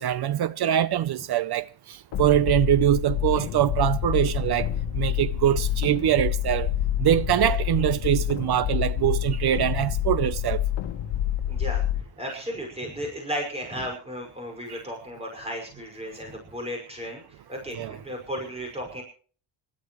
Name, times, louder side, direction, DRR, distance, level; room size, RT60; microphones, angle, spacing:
voice 1, 0.0-4.7 4.9-6.7 7.0-10.6 14.7-14.8 17.8-18.0, right 11 dB, 60° right, 0.7 m, -23 dB
sound 1, 2.1-12.0, left 11 dB, 75° left, 1.3 m, -27 dB
voice 2, 11.5-19.0, equal, 15° right, 5.6 m, -35 dB
26.0 x 12.5 x 3.1 m
cardioid pair, 155°, 45 cm